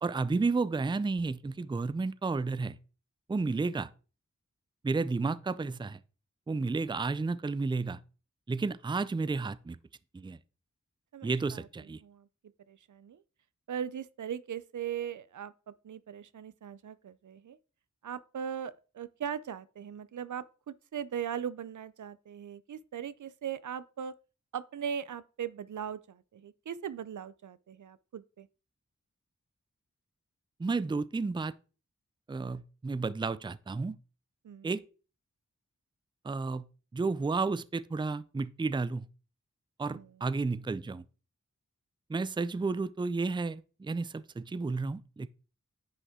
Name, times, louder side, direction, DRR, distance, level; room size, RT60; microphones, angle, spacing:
voice 1, 0.0-2.8 3.3-3.9 4.8-6.0 6.5-8.0 8.5-9.8 10.1-10.4 11.2-12.0 30.6-31.5 32.3-34.0 34.6-34.8 36.2-36.6 36.9-39.1 39.8-41.0 42.1-45.3, right 3 dB, 15° right, 0.4 m, -32 dB
voice 2, 11.1-11.7 12.0-12.3 12.7-13.2 13.7-17.6 18.0-24.1 24.5-28.5 34.4-34.7 39.9-40.1, right 8 dB, 80° right, 0.5 m, -39 dB
9.9 x 5.5 x 3.6 m
wide cardioid pair, 65°, 30 cm